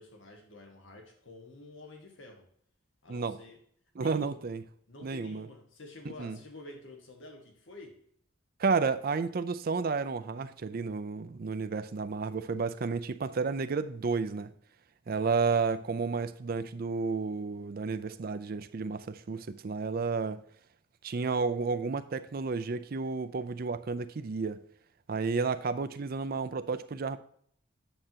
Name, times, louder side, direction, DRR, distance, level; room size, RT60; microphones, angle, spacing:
voice 1, 0.0-2.5 3.0-3.6 4.0-4.4 4.9-8.0, left 2 dB, 70° left, 1.6 m, -49 dB
voice 2, 3.1-3.4 4.0-4.6 5.0-5.5 6.2-6.4 8.6-14.5 15.1-20.4 21.0-24.6 25.1-27.2, right 4 dB, 50° right, 0.5 m, -31 dB
8.8 x 7.6 x 2.9 m
head